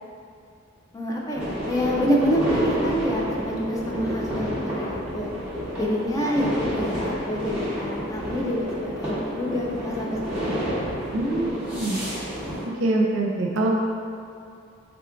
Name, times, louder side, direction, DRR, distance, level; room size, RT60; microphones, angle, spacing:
voice 1, 0.9-5.3 5.8-10.7, equal, 15° left, -3 dB, 0.4 m, -27 dB
sound 1, 1.3-12.7, equal, 5° right, 0.9 m, -30 dB
voice 2, 11.1-12.0 12.8-13.7, right 2 dB, 75° right, -2 dB, 0.5 m, -24 dB
3.6 x 2.3 x 3.6 m, 2.5 s
head